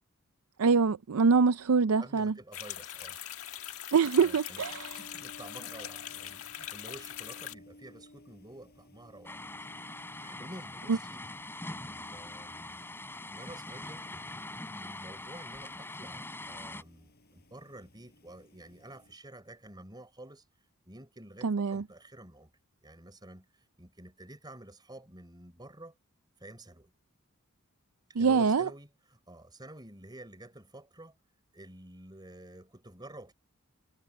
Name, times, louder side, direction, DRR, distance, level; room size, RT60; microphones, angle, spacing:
voice 1, 0.6-2.3 3.9-4.9 10.9-11.0 21.4-21.8 28.2-28.7, right 5 dB, 75° right, 0.5 m, -24 dB
voice 2, 2.0-3.2 4.2-9.7 10.1-12.8 13.2-14.0 14.7-20.5 20.8-22.5 22.8-26.0 26.4-26.9 28.1-31.2 31.5-33.3, right 1 dB, 20° right, 5.1 m, -50 dB
sound 1, 2.5-7.5, left 11 dB, 75° left, 1.4 m, -42 dB
sound 2, 4.6-19.2, left 1 dB, 45° left, 6.9 m, -57 dB
sound 3, 9.2-16.8, left 2 dB, 10° left, 7.1 m, -43 dB
head